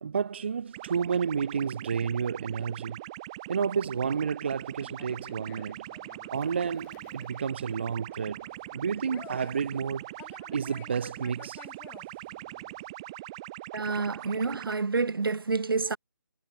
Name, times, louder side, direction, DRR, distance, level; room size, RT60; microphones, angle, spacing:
voice 1, 0.0-3.0 3.5-5.8 6.3-10.1 10.5-11.7, right 6 dB, 30° right, 0.5 m, -31 dB
sound 1, 0.7-14.7, right 18 dB, 15° right, 1.2 m, -42 dB
Conversation, 4.5-12.9, left 19 dB, 10° left, 3.0 m, -54 dB
voice 2, 13.7-16.0, right 4 dB, 80° right, 1.3 m, -28 dB
hypercardioid pair, 170°, 12 cm